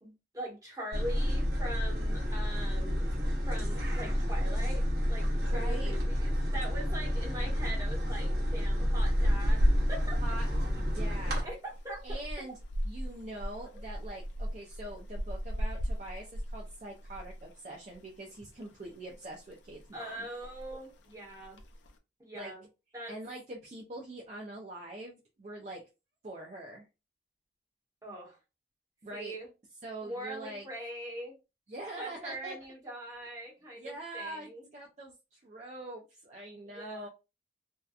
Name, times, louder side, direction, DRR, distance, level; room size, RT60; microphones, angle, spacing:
voice 1, 0.0-3.1 3.4-10.2 11.4-12.2 19.9-21.6 22.2-22.6 22.9-23.1 28.0-28.4 29.1-29.5 30.0-31.4 32.0-34.7 36.6-37.1, right 1 dB, 20° right, 0.9 m, -42 dB
sound 1, 0.9-11.4, equal, 55° right, 0.9 m, -30 dB
voice 2, 5.5-6.0 10.2-10.5 10.8-11.5 12.0-12.6 12.8-20.3 22.3-22.5 23.1-25.8 26.2-26.9 29.0-29.3 29.8-30.7 31.7-32.5 33.8-37.1, right 1 dB, 40° right, 0.4 m, -43 dB
sound 2, 9.0-17.5 17.7-18.0 18.3-19.2 19.5-19.9 20.1-20.2 20.4-20.9 21.4-21.9, equal, 80° left, 0.4 m, -34 dB
2.7 x 2.1 x 2.3 m
head